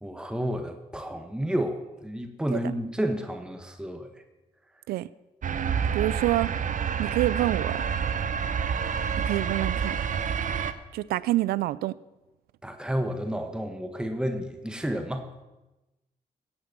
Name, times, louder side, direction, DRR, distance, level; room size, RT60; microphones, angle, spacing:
voice 1, 0.0-4.1 12.6-15.3, equal, 5° right, 6 dB, 1.5 m, -31 dB
sound 1, 5.4-10.7, right 7 dB, 55° right, 0.9 m, -28 dB
voice 2, 5.9-6.5 7.0-7.9 9.2-10.0 10.9-12.0, right 16 dB, 90° right, 20 dB, 0.4 m, -27 dB
16.5 x 8.2 x 6.3 m, 1.0 s
supercardioid pair, 55°, 15 cm